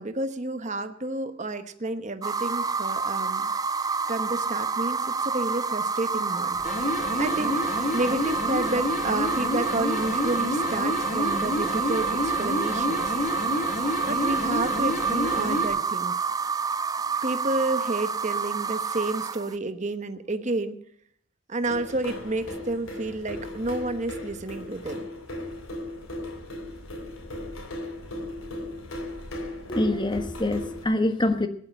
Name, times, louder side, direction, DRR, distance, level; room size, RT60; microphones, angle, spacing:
voice 1, 0.0-3.5 4.1-13.2 14.1-16.1 17.2-20.8 21.5-25.1, right 2 dB, 35° right, 9 dB, 1.0 m, -30 dB
sound 1, 2.2-19.6, right 5 dB, 20° right, 0.4 m, -28 dB
sound 2, 6.5-15.8, left 2 dB, 40° left, 2.7 m, -29 dB
sound 3, 21.6-30.8, left 1 dB, 85° left, 3.1 m, -37 dB
voice 2, 29.7-31.5, left 1 dB, 25° left, 9 dB, 1.3 m, -25 dB
17.0 x 11.0 x 5.5 m, 0.64 s
head